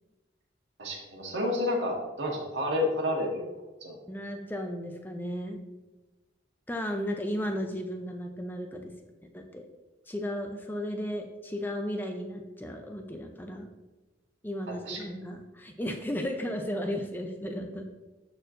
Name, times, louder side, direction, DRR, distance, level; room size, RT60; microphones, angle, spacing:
voice 1, 0.8-3.5 3.8-3.9 14.7-15.1, left 1 dB, 85° right, -1 dB, 1.7 m, -30 dB
voice 2, 4.1-5.6 6.7-8.9 9.3-9.6 10.1-13.7 14.4-17.8, equal, 10° left, 4 dB, 0.5 m, -34 dB
12.5 x 4.4 x 2.6 m, 1.1 s
head